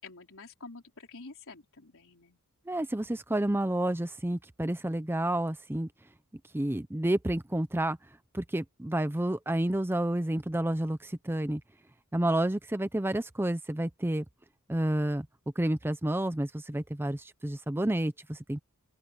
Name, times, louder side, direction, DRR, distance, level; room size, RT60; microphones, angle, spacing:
voice 1, 0.0-2.4, left 3 dB, 65° left, 4.2 m, -48 dB
voice 2, 2.7-5.9 6.5-8.0 8.3-11.6 12.1-14.2 14.7-15.3 15.6-18.6, right 1 dB, 10° right, 0.6 m, -30 dB
open air
head